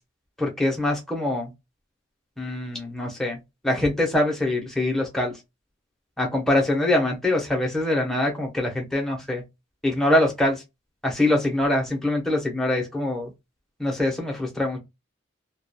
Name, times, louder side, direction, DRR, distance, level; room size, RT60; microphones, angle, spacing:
voice 1, 0.4-1.5 2.4-3.4 3.6-5.3 6.2-9.4 9.8-10.6 11.0-13.3 13.8-14.8, left 1 dB, ahead, 0.6 m, -24 dB
2.3 x 2.1 x 2.6 m
head